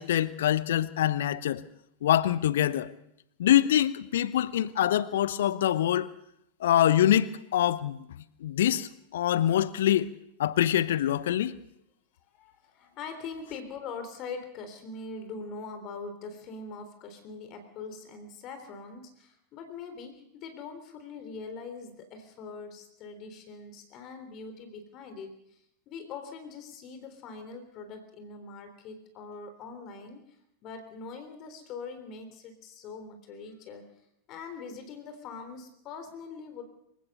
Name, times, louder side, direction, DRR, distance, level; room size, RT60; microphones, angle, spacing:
voice 1, 0.0-1.6 2.0-2.9 3.4-6.1 6.6-8.1 8.4-10.1 10.4-11.5, left 11 dB, 60° left, 18 dB, 0.9 m, -25 dB
voice 2, 12.4-30.4 30.6-33.9 34.3-36.6, left 4 dB, 35° left, 7 dB, 3.6 m, -42 dB
26.5 x 16.0 x 6.8 m, 0.78 s
figure-of-eight pair, 90°, 0 cm